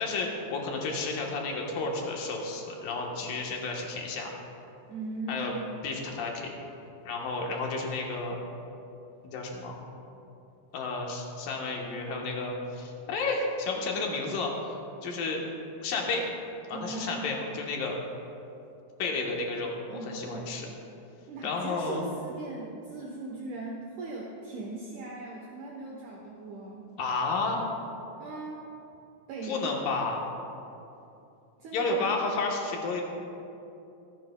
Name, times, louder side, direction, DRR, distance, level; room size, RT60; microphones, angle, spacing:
voice 1, 0.0-4.3 5.3-5.5 5.8-6.5 7.0-8.4 9.2-9.8 10.7-14.7 15.0-15.4 15.8-16.2 16.7-18.0 19.0-19.7 20.0-20.7 21.4-22.0 27.0-27.6 29.4-30.3 31.7-33.0, left 3 dB, 75° left, 0 dB, 2.8 m, -31 dB
voice 2, 4.9-5.8 16.7-17.4 19.9-20.6 21.3-26.9 28.2-28.6 29.3-30.0 31.6-32.1, right 2 dB, 65° right, -3 dB, 2.3 m, -39 dB
25.5 x 9.2 x 2.2 m, 2.8 s
omnidirectional pair, 4.1 m